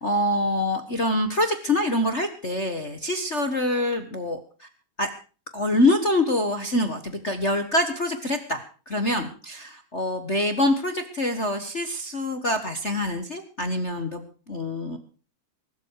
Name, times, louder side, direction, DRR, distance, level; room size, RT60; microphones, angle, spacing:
voice 1, 0.0-4.7 5.0-5.1 5.5-14.2 14.5-15.0, left 1 dB, 45° left, 7 dB, 0.9 m, -25 dB
21.5 x 12.5 x 4.8 m, 0.37 s
omnidirectional pair, 3.7 m